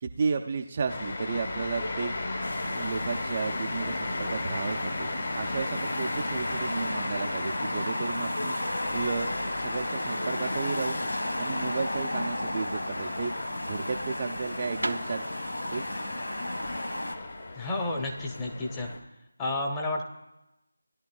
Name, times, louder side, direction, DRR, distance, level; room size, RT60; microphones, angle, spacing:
voice 1, 0.0-2.2 2.7-11.0 11.4-13.3 13.7-15.3 15.7-16.0, right 5 dB, 30° right, 4 dB, 0.5 m, -33 dB
sound 1, 0.9-19.0, left 2 dB, 45° left, 1.4 m, -36 dB
sound 2, 2.4-17.1, left 1 dB, 80° left, 1.6 m, -34 dB
sound 3, 14.7-18.6, right 2 dB, 75° right, 0.8 m, -40 dB
voice 2, 17.5-18.9 19.4-20.0, left 2 dB, 10° left, 0 dB, 1.0 m, -31 dB
17.5 x 11.0 x 2.4 m, 0.94 s
figure-of-eight pair, 165°, 0 cm